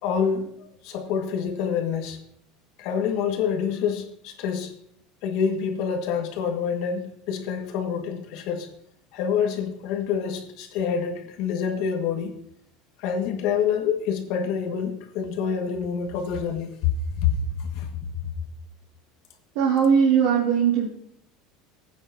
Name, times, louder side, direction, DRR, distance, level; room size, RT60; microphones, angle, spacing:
voice 1, 0.0-2.2 2.8-4.7 5.2-8.7 9.1-12.4 13.0-16.9 17.2-17.3 17.6-17.9, left 7 dB, 55° left, 4 dB, 1.7 m, -27 dB
voice 2, 19.5-20.9, right 7 dB, 65° right, -4 dB, 2.2 m, -19 dB
17.5 x 8.9 x 2.8 m, 0.68 s
cardioid pair, 160°, 0 cm